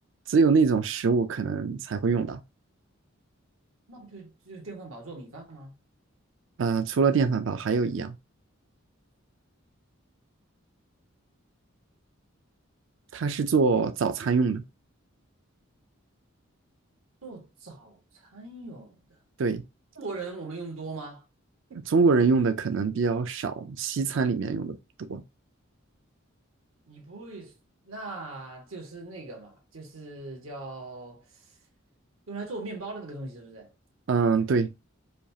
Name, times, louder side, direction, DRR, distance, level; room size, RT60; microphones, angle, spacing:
voice 1, 0.3-2.4 6.6-8.2 13.1-14.6 19.4-19.6 21.7-25.2 34.1-34.7, right 4 dB, 65° right, 0.4 m, -24 dB
voice 2, 3.9-5.7 17.2-19.0 19.9-21.2 26.9-27.6 27.8-31.4 32.3-33.7, right 3 dB, 85° right, 1.5 m, -40 dB
5.1 x 2.4 x 2.8 m
head